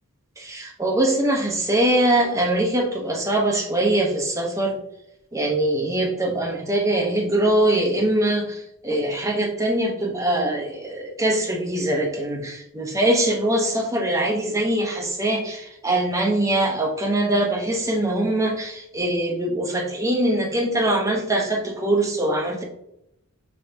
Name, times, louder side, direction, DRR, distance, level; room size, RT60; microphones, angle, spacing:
voice 1, 0.4-4.7 5.3-22.6, right 1 dB, 15° right, 0 dB, 0.8 m, -22 dB
5.5 x 3.4 x 2.7 m, 0.80 s
head